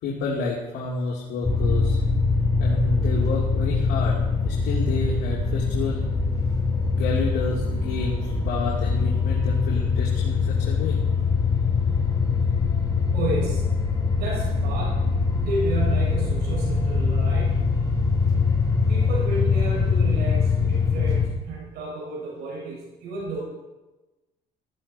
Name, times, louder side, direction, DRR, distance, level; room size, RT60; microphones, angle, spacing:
voice 1, 0.0-2.0 2.6-6.1 6.9-11.0, left 3 dB, 80° left, -4 dB, 2.9 m, -30 dB
sound 1, 1.4-21.3, left 4 dB, 20° left, 3.5 m, -23 dB
voice 2, 13.1-13.7 14.1-17.8 18.9-23.4, right 2 dB, 75° right, -3 dB, 6.6 m, -32 dB
15.0 x 14.0 x 4.4 m, 1.1 s
cardioid pair, 110°, 17 cm